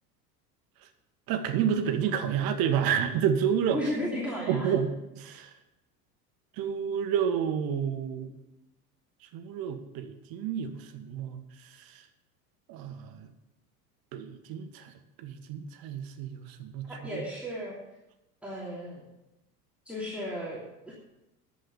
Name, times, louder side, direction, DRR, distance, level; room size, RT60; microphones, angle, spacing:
voice 1, 1.3-3.8 4.5-5.5 6.6-8.3 9.3-11.4 11.8-12.0 12.7-13.3 14.1-14.9 15.2-17.2, right 8 dB, 45° right, 8 dB, 1.5 m, -30 dB
voice 2, 3.7-4.7 16.9-17.8 18.4-19.0 19.8-20.6 20.9-21.0, equal, 5° right, -7 dB, 3.0 m, -34 dB
11.5 x 8.0 x 6.9 m, 0.94 s
hypercardioid pair, 75°, 48 cm